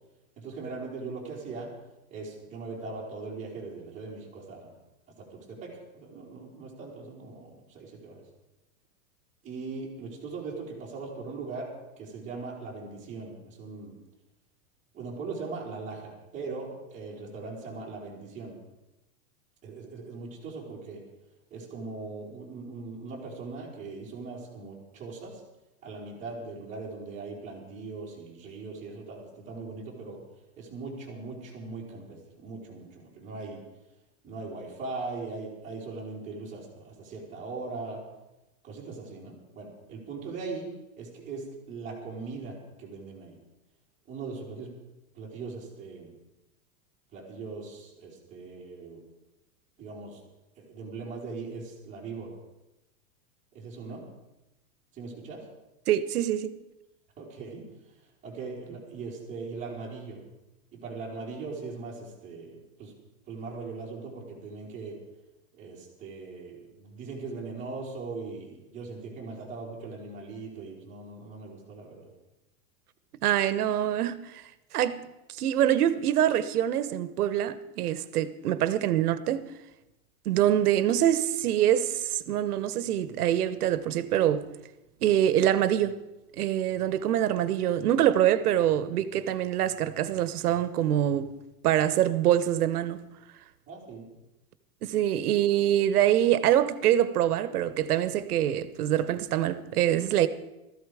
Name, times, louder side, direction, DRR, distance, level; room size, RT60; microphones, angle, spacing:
voice 1, 0.4-1.7 2.1-4.7 5.2-8.2 9.4-11.7 12.0-13.9 14.9-18.6 19.6-21.0 21.5-25.4 25.8-30.2 30.6-33.6 34.2-38.0 38.6-43.4 44.1-44.7 45.1-46.1 47.1-49.0 49.8-50.2 50.6-52.4 53.5-54.0 54.9-55.4 57.2-57.6 58.2-60.2 60.7-62.9 63.3-65.0 65.6-72.1 93.7-94.1, right 4 dB, 15° right, 4.0 m, -40 dB
voice 2, 55.9-56.5 73.2-74.4 74.7-75.0 75.4-79.5 80.2-84.4 85.0-86.0 86.4-91.3 91.6-93.0 94.8-100.3, right 11 dB, 90° right, 1.2 m, -25 dB
16.0 x 14.5 x 4.9 m
supercardioid pair, 175°, 44 cm